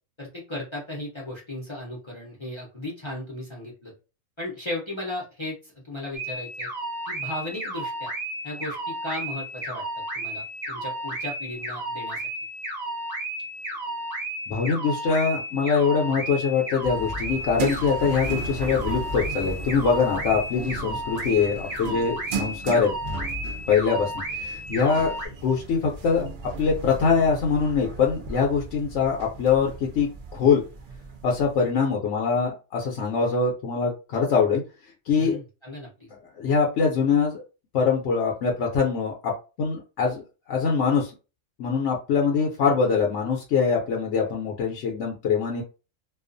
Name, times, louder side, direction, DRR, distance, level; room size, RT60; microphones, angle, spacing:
voice 1, 0.2-3.9 4.4-6.7 7.1-8.1 8.4-9.8 10.1-12.2 35.1-36.1, left 1 dB, 30° left, -4 dB, 0.5 m, -36 dB
sound 1, 6.1-25.3, right 1 dB, 35° right, 0.9 m, -33 dB
voice 2, 14.5-23.0 23.7-25.1 25.4-26.3 26.6-30.6 31.2-34.6 35.1-35.4 36.4-37.4 37.7-41.1 41.6-45.6, left 5 dB, 65° left, -1 dB, 0.8 m, -23 dB
sound 2, 16.8-31.6, right 2 dB, 85° right, 0.4 m, -36 dB
2.3 x 2.3 x 2.5 m, 0.32 s
omnidirectional pair, 1.4 m